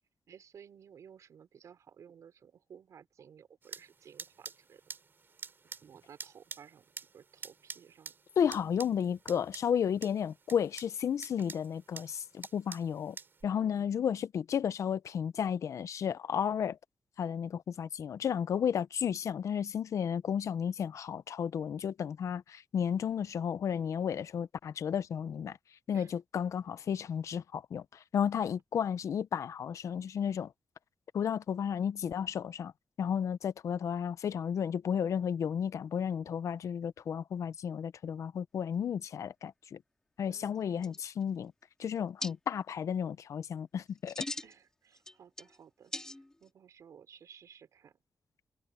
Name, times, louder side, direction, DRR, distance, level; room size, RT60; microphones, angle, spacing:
voice 1, 0.3-4.8 5.8-8.1 13.5-14.0 25.9-26.1 40.3-41.0 44.4-45.9 46.4-47.9, right 8 dB, 85° right, 5.4 m, -56 dB
sound 1, 3.6-13.4, right 5 dB, 40° right, 4.5 m, -49 dB
voice 2, 8.4-13.2 13.4-16.8 17.2-25.6 25.9-30.5 31.1-32.7 33.0-39.8 40.2-41.5 41.8-44.2, left 8 dB, 75° left, 0.7 m, -33 dB
sound 2, 40.6-40.7 40.8-41.4 42.2-42.3 43.9-44.6 44.9-45.6 45.9-46.5, left 1 dB, 10° left, 2.6 m, -40 dB
wide cardioid pair, 145°, 5 cm